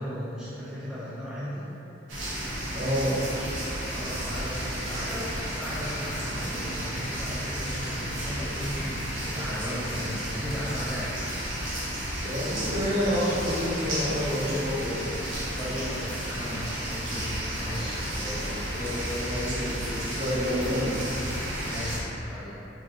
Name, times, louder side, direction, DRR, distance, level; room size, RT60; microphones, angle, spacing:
voice 1, 0.0-1.7 3.9-11.1 15.6-18.0 21.6-22.6, equal, 5° right, -11 dB, 0.3 m, -36 dB
sound 1, 2.1-22.0, equal, 80° right, 0.6 m, -32 dB
voice 2, 2.7-3.2 12.2-15.1 17.7-17.8 18.1-21.2, equal, 45° right, -8 dB, 0.7 m, -29 dB
3.3 x 2.5 x 2.6 m, 3.0 s
head